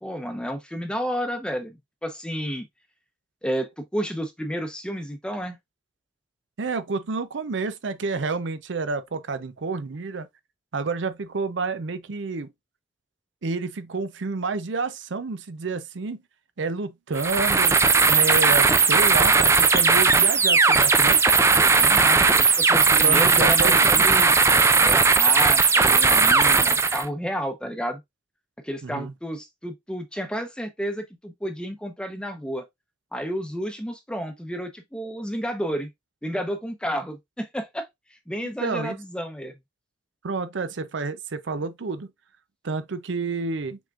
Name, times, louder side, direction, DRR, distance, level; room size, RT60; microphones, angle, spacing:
voice 1, 0.0-2.7 3.4-5.6 21.6-24.4 24.8-28.0 28.6-32.6 33.1-35.9 36.2-37.9 38.3-39.5, equal, 5° left, 0.8 m, -31 dB
voice 2, 6.6-10.3 10.7-12.5 13.4-16.2 16.6-17.8 18.1-21.2 22.9-24.2 28.8-29.1 38.6-39.0 40.2-42.1 42.6-43.8, right 4 dB, 70° right, 0.6 m, -29 dB
sound 1, 17.1-27.1, right 4 dB, 15° right, 0.3 m, -18 dB
6.0 x 3.6 x 2.4 m
head